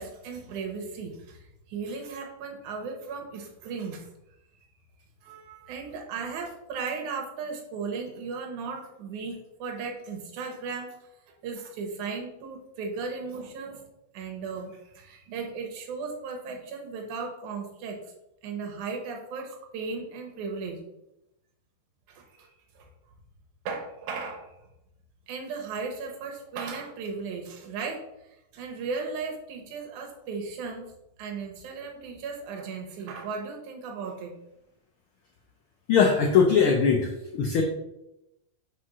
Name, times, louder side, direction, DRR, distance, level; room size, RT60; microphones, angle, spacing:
voice 1, 0.0-4.1 5.2-11.1 11.4-13.8 14.1-18.1 18.4-20.8 22.1-22.5 22.8-22.9 23.7-24.5 25.3-28.0 28.5-30.9 31.2-34.3, right 4 dB, 90° right, 1 dB, 2.5 m, -36 dB
voice 2, 35.9-37.6, left 6 dB, 85° left, 2 dB, 1.1 m, -21 dB
5.0 x 4.7 x 6.0 m, 0.88 s
omnidirectional pair, 3.4 m